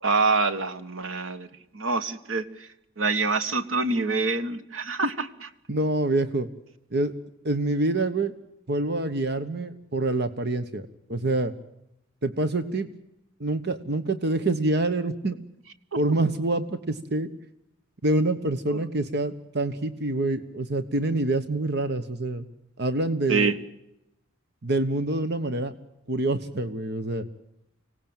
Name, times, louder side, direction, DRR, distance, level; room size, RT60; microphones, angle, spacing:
voice 1, 0.0-1.5 1.7-2.5 3.0-5.3 18.7-18.8 23.3-23.5, right 4 dB, 90° right, 11 dB, 1.7 m, -25 dB
voice 2, 5.7-6.5 6.9-7.1 7.4-8.3 8.7-11.5 12.2-12.9 13.4-15.4 16.0-17.3 18.0-22.5 22.8-23.5 24.6-25.7 26.1-27.3, right 2 dB, 55° right, 11 dB, 1.2 m, -26 dB
25.5 x 18.0 x 9.0 m, 0.84 s
head